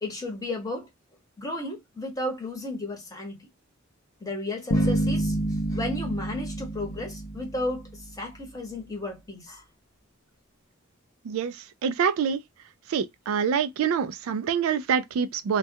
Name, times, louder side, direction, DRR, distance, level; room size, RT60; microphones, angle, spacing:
voice 1, 0.0-0.9 1.4-3.5 4.2-9.6, left 2 dB, 15° left, 0.9 m, -34 dB
sound 1, 4.7-8.1, right 1 dB, 55° left, 0.6 m, -28 dB
voice 2, 11.2-12.4 12.9-15.6, right 7 dB, 85° right, 0.3 m, -26 dB
2.3 x 2.2 x 2.7 m
head